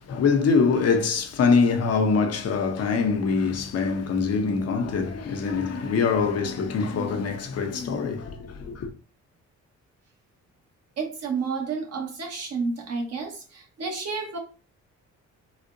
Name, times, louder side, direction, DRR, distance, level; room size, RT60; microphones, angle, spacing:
voice 1, 0.0-8.9, left 5 dB, 55° left, 0.8 m, -24 dB
voice 2, 11.0-14.4, right 4 dB, 55° right, 1.2 m, -30 dB
4.0 x 2.1 x 2.5 m
cardioid pair, 90°, 30 cm